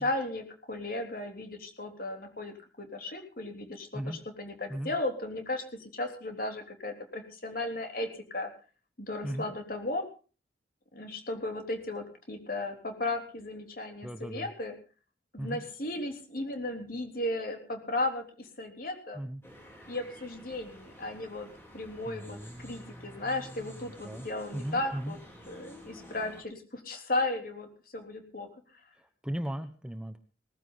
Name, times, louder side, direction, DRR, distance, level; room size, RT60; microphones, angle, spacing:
voice 1, 0.0-8.5 9.0-10.0 10.9-14.7 15.3-19.2 19.9-25.2 25.5-28.5, left 2 dB, 55° left, 4 dB, 3.6 m, -35 dB
voice 2, 14.0-14.5 15.4-15.6 19.1-19.4 22.0-25.2 29.0-30.2, right 1 dB, 5° right, 8 dB, 1.1 m, -38 dB
sound 1, 19.4-26.4, equal, 15° left, 4.9 m, -51 dB
19.5 x 15.0 x 4.0 m, 0.37 s
head